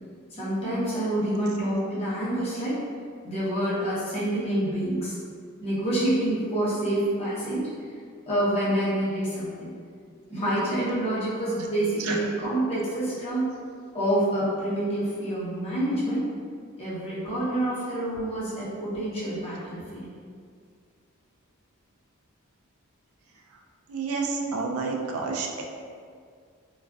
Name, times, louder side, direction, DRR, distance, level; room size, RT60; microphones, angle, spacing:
voice 1, 0.3-2.8 3.2-5.2 5.6-7.6 8.3-9.7 10.3-13.5 13.9-16.2 16.8-20.1 24.4-24.5, right 1 dB, 30° left, -9 dB, 0.7 m, -27 dB
voice 2, 23.9-25.6, right 4 dB, 85° right, 1 dB, 0.3 m, -29 dB
2.3 x 2.3 x 2.3 m, 2.1 s
head